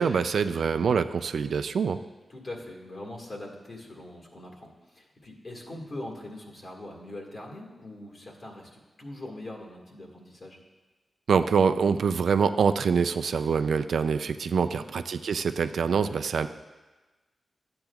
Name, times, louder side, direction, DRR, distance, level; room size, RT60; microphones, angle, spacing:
voice 1, 0.0-2.0 11.3-16.5, right 6 dB, 80° right, 10 dB, 0.3 m, -25 dB
voice 2, 2.3-10.6 14.6-14.8, left 1 dB, 45° left, 0 dB, 1.7 m, -42 dB
12.0 x 8.7 x 2.3 m, 1.2 s
wide cardioid pair, 125°, 0 cm